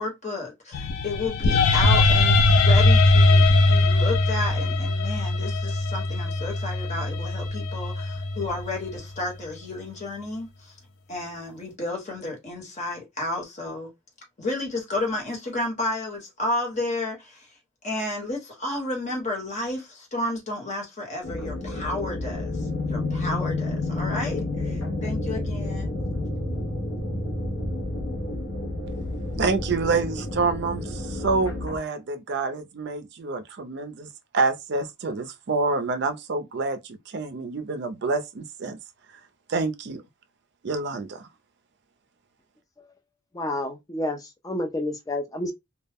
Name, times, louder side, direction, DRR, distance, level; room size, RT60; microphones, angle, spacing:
voice 1, 0.0-10.7 11.1-13.9 14.4-17.5 17.8-25.9, left 2 dB, 35° left, 1.0 m, -32 dB
sound 1, 0.7-8.9, left 2 dB, 85° left, 0.4 m, -20 dB
sound 2, 21.2-31.8, left 2 dB, 65° left, 0.8 m, -30 dB
voice 2, 29.4-38.8 39.5-40.0 40.6-41.3, right 4 dB, 55° right, 0.4 m, -27 dB
voice 3, 43.3-45.5, left 1 dB, 15° left, 0.3 m, -29 dB
2.2 x 2.0 x 3.4 m
head